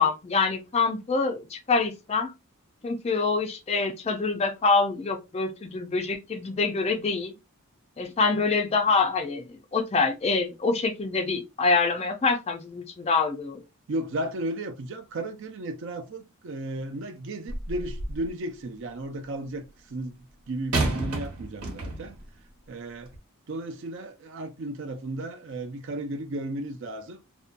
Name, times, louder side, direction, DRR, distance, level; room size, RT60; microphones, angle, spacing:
voice 1, 0.0-2.3 2.8-7.3 8.0-13.6, left 4 dB, 30° left, 0.3 m, -25 dB
voice 2, 13.9-22.2 22.7-23.1 23.5-27.2, right 1 dB, 55° right, 0.4 m, -34 dB
sound 1, 17.5-18.3 20.7-22.3 23.1-23.2, right 2 dB, 85° right, 1.1 m, -30 dB
2.6 x 2.2 x 2.4 m
head